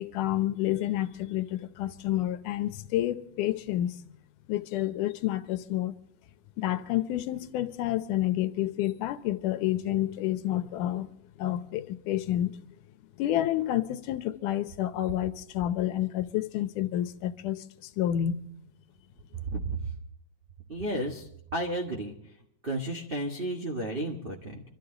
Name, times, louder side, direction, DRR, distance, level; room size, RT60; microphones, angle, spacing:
voice 1, 0.0-4.0 4.5-5.9 6.6-11.1 11.4-12.6 13.2-18.4, left 13 dB, 85° left, 2.4 m, -29 dB
voice 2, 20.7-22.1 22.6-24.6, right 1 dB, 30° right, 1.1 m, -33 dB
25.5 x 13.5 x 3.9 m
omnidirectional pair, 3.6 m